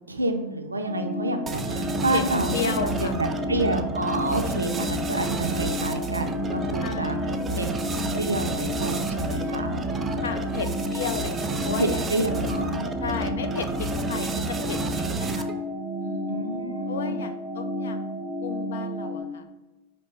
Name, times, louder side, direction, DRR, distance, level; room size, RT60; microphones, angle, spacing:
voice 1, 0.1-2.7 3.0-7.2 7.5-7.9 8.1-9.8 11.8-12.9 16.3-17.2, right 2 dB, 80° right, 6 dB, 0.4 m, -29 dB
sound 1, 0.8-19.2, equal, 5° left, 0.9 m, -31 dB
sound 2, 1.5-15.7, right 3 dB, 20° right, 0.3 m, -31 dB
voice 2, 2.5-3.1 6.8-7.2 10.2-12.0 13.0-15.5 16.0-16.4 16.9-19.5, left 6 dB, 65° left, 7 dB, 0.4 m, -34 dB
sound 3, 2.7-12.9, left 13 dB, 35° left, 0.8 m, -42 dB
5.1 x 2.8 x 3.2 m, 1.0 s
figure-of-eight pair, 90°, 0 cm